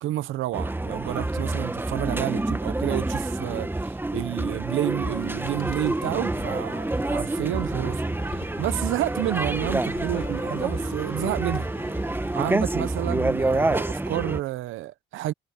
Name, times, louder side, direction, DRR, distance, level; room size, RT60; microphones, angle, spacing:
voice 1, 0.0-11.7 12.3-15.3, right 15 dB, 85° right, 0.7 m, -30 dB
sound 1, 0.5-14.4, right 2 dB, 10° right, 1.2 m, -28 dB
sound 2, 5.0-12.6, left 13 dB, 85° left, 1.8 m, -43 dB
cardioid pair, 90°, 20 cm